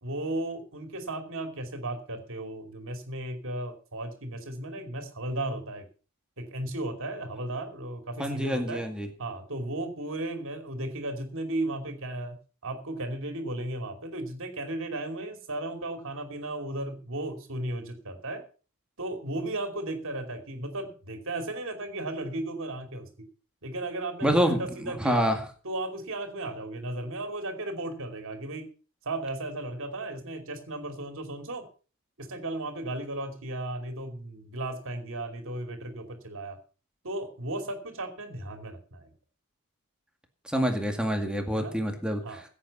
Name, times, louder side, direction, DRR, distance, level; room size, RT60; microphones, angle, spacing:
voice 1, 0.0-5.9 6.4-8.8 9.2-12.4 12.6-18.4 19.0-23.1 23.6-28.7 29.0-31.6 32.2-36.6 37.0-39.1 41.5-41.7 42.2-42.4, right 2 dB, 60° right, 5 dB, 2.8 m, -35 dB
voice 2, 8.2-9.1 24.2-25.5 40.5-42.4, equal, 5° right, 4 dB, 2.0 m, -27 dB
16.0 x 8.7 x 5.4 m, 0.37 s
head